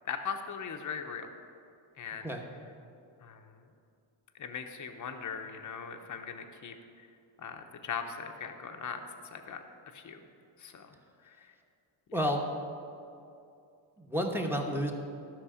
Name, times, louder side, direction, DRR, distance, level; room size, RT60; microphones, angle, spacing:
voice 1, 0.1-1.3 2.0-2.3 3.2-3.4 4.4-6.7 7.4-9.0 9.3-9.6 9.9-10.2 10.6-10.9, left 6 dB, 35° left, 5 dB, 0.8 m, -39 dB
voice 2, 12.1-12.5 14.0-14.9, equal, 5° right, 2 dB, 1.0 m, -30 dB
12.5 x 6.1 x 4.9 m, 2.5 s
cardioid pair, 105°, 50 cm